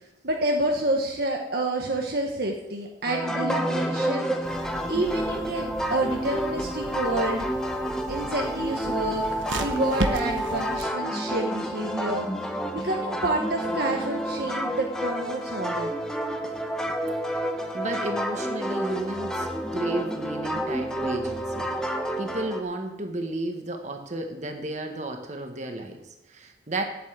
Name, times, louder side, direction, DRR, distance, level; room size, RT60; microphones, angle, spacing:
voice 1, 0.2-4.6 4.9-7.5 8.1-9.2 9.5-12.3 12.7-15.9, right 2 dB, 55° right, 1 dB, 1.2 m, -29 dB
sound 1, 3.0-22.6, equal, 5° left, 0.9 m, -29 dB
sound 2, 4.4-10.9, right 2 dB, 90° right, 0.9 m, -36 dB
voice 2, 17.7-21.7 22.2-26.8, right 2 dB, 40° right, 4 dB, 1.5 m, -33 dB
8.3 x 8.2 x 8.0 m, 0.93 s
head